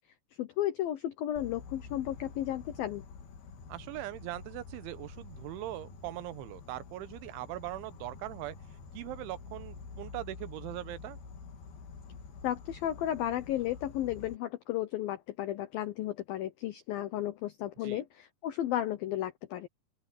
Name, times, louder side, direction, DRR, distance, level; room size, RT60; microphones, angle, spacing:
voice 1, 0.4-3.0 12.4-19.7, left 12 dB, 75° left, 2.2 m, -33 dB
Insect, 1.4-14.4, left 4 dB, 55° left, 4.1 m, -48 dB
voice 2, 3.7-8.6 8.9-11.2 17.8-18.0, right 15 dB, 85° right, 3.4 m, -40 dB
open air
omnidirectional pair, 5.4 m